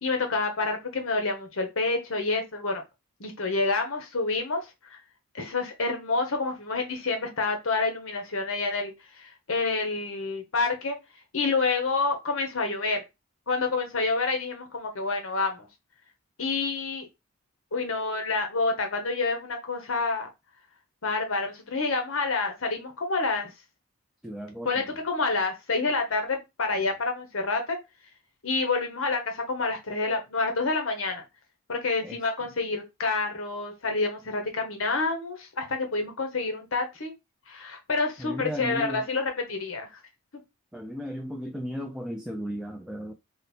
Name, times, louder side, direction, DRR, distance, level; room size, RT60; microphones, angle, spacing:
voice 1, 0.0-2.8 3.2-5.0 5.3-11.0 11.3-13.0 13.5-15.7 16.4-17.1 17.7-20.3 21.0-23.5 24.6-27.8 28.4-31.2 31.7-37.1 37.5-39.9, left 3 dB, 60° left, 1.0 m, -28 dB
voice 2, 24.2-24.7 32.0-32.2 38.2-39.0 40.7-43.1, equal, 5° right, 0.3 m, -35 dB
4.1 x 2.1 x 4.2 m
head